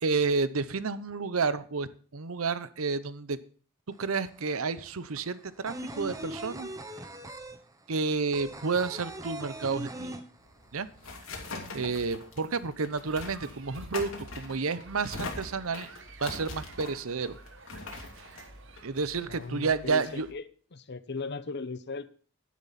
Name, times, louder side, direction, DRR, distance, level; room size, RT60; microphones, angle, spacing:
voice 1, 0.0-3.4 4.0-6.7 7.9-10.2 10.7-10.9 11.7-14.1 14.4-15.9 16.2-17.4 18.8-20.3, right 4 dB, 75° right, 0.8 m, -30 dB
sound 1, 3.9-4.0 4.3-10.9 11.1-11.2 11.5-12.3, right 1 dB, 15° right, 1.0 m, -40 dB
sound 2, 10.4-19.7, left 3 dB, 70° left, 2.8 m, -42 dB
sound 3, 12.7-20.3, right 3 dB, 60° right, 1.4 m, -52 dB
voice 2, 19.3-20.4 20.7-22.1, left 4 dB, 50° left, 0.8 m, -37 dB
10.5 x 10.5 x 4.1 m
head